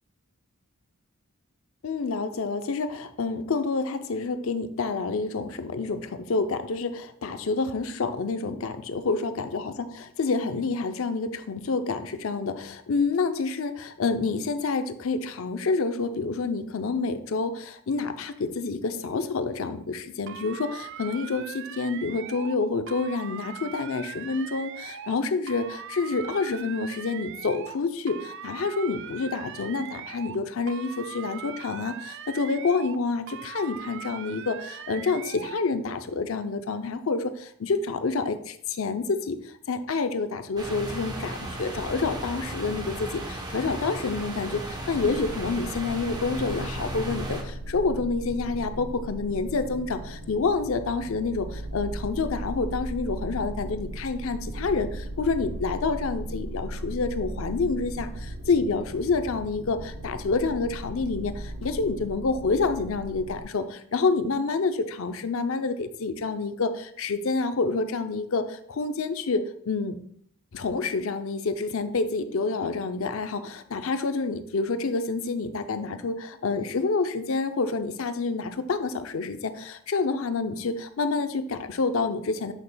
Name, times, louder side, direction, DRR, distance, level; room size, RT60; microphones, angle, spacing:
voice 1, 1.8-70.0 70.5-82.5, left 4 dB, 65° left, 9 dB, 0.5 m, -28 dB
sound 1, 20.3-22.6 22.9-25.2 25.5-27.8 28.1-30.4 30.7-33.0 33.3-35.6, right 8 dB, 55° right, 0.4 m, -40 dB
sound 2, 40.6-47.4, right 1 dB, 20° right, 0.9 m, -35 dB
sound 3, 44.9-63.4, right 1 dB, 85° right, 0.7 m, -37 dB
7.3 x 6.6 x 2.2 m, 0.64 s
head